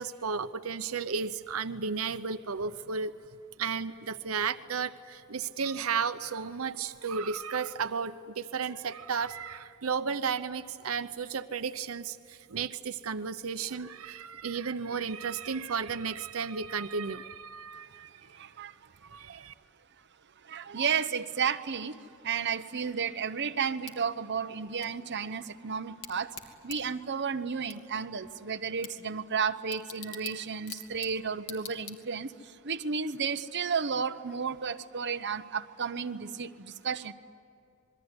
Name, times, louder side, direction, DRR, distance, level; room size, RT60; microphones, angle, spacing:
voice 1, 0.0-3.1 3.6-18.2 19.1-19.5, right 5 dB, 90° right, 11 dB, 0.8 m, -33 dB
voice 2, 18.3-18.7 19.3-19.4 20.4-26.3 26.6-37.1, right 6 dB, 55° right, 8 dB, 0.9 m, -33 dB
Bicycle / Tick, 23.8-32.4, left 6 dB, 75° left, 2.8 m, -48 dB
27.0 x 22.0 x 9.8 m, 2.6 s
head